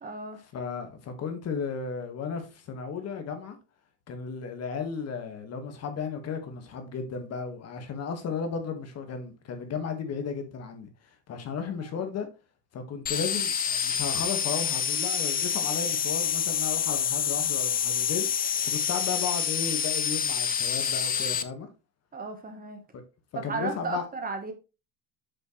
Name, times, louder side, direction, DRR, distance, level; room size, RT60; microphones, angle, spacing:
voice 1, 0.0-0.4 11.8-12.1 22.1-22.8 23.5-24.5, right 3 dB, 25° right, 1.3 m, -34 dB
voice 2, 0.5-3.6 4.1-12.3 12.7-21.7 22.9-23.0 23.4-24.0, left 6 dB, 40° left, 1.7 m, -34 dB
sound 1, 13.1-21.4, left 8 dB, 25° left, 0.6 m, -27 dB
7.5 x 6.5 x 3.2 m
cardioid pair, 145°, 38 cm